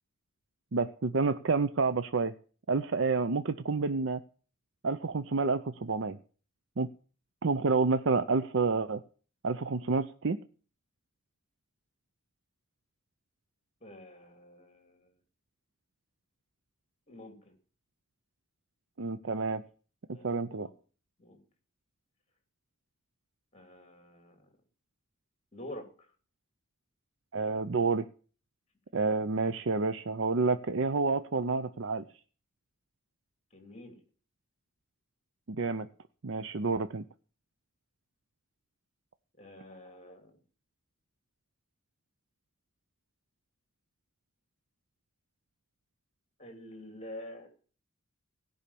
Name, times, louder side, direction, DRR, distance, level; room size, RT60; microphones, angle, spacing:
voice 1, 0.7-2.3 2.7-4.2 4.8-6.2 6.8-6.9 7.4-9.0 9.4-10.4 19.0-19.6 20.2-20.7 27.3-28.1 28.9-32.0 35.5-35.9 36.2-37.0, right 4 dB, 60° right, 11 dB, 0.6 m, -29 dB
voice 2, 13.8-15.1 17.1-17.5 20.1-20.7 21.2-21.4 23.5-24.5 25.5-25.8 33.5-34.0 39.4-40.4 46.4-47.5, left 1 dB, 30° left, 5 dB, 2.9 m, -47 dB
17.0 x 5.7 x 8.4 m, 0.41 s
head